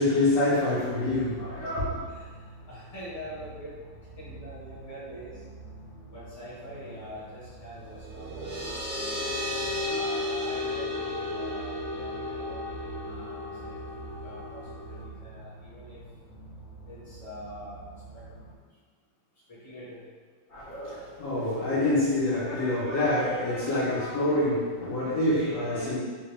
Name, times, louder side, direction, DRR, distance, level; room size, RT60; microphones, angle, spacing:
voice 1, 0.0-2.0 20.5-26.0, left 1 dB, 60° left, -9 dB, 0.9 m, -26 dB
sound 1, 1.0-18.6, right 3 dB, 90° left, 1.4 m, -47 dB
voice 2, 2.1-3.8 4.2-5.4 6.1-9.2 9.9-16.0 16.9-17.8 18.1-18.2 19.5-20.0, equal, 10° left, -10 dB, 0.9 m, -44 dB
sound 2, 7.9-15.1, left 2 dB, 80° right, 0.6 m, -34 dB
3.5 x 2.7 x 3.2 m, 1.5 s
omnidirectional pair, 2.2 m